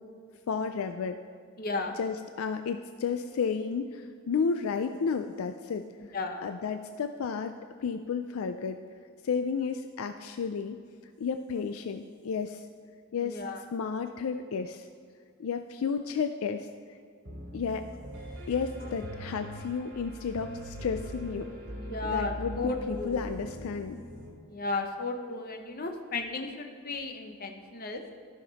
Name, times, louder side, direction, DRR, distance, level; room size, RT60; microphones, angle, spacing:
voice 1, 0.5-1.2 1.9-8.8 9.2-10.8 11.2-12.7 13.1-13.4 13.7-14.9 15.4-16.7 17.5-17.9 18.5-21.5 22.0-24.0, left 5 dB, 70° left, 8 dB, 0.4 m, -32 dB
voice 2, 1.6-1.9 6.1-6.5 13.2-13.6 21.9-23.2 24.5-28.0, left 3 dB, 40° left, 4 dB, 0.8 m, -34 dB
Piano, 17.2-24.3, equal, 60° right, 2.6 m, -41 dB
13.5 x 5.9 x 4.1 m, 2.2 s
head